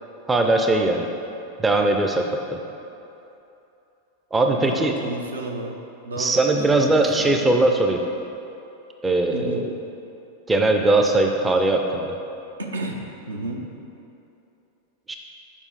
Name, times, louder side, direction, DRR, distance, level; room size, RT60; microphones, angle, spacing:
voice 1, 0.3-1.1 1.6-2.3 4.3-4.9 6.2-8.0 9.0-9.7 10.5-12.2 15.1-15.2, right 2 dB, 15° right, 3 dB, 0.5 m, -20 dB
voice 2, 4.5-5.8 6.0-7.5 9.3-9.7 12.6-13.0 13.3-13.7, right 2 dB, 75° right, 2 dB, 0.7 m, -32 dB
7.2 x 4.9 x 4.0 m, 2.8 s
figure-of-eight pair, 90°, 0 cm